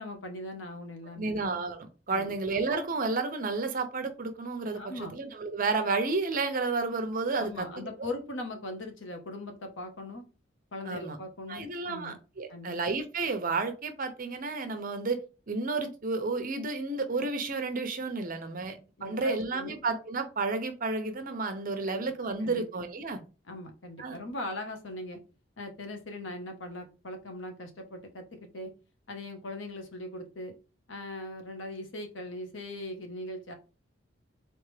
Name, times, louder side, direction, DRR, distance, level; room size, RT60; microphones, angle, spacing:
voice 1, 0.0-1.4 2.1-2.3 4.7-5.2 7.4-10.2 10.7-12.2 12.5-12.8 18.6-18.7 19.0-19.7 21.9-22.0 22.4-22.6 23.5-25.2 25.6-28.7 29.1-30.5 30.9-33.5, left 1 dB, 80° left, 5 dB, 1.0 m, -40 dB
voice 2, 1.2-7.8 10.8-11.2 11.5-15.2 15.5-23.2 24.0-24.2, right 3 dB, 45° right, 8 dB, 0.8 m, -31 dB
4.0 x 3.5 x 3.2 m, 0.32 s
head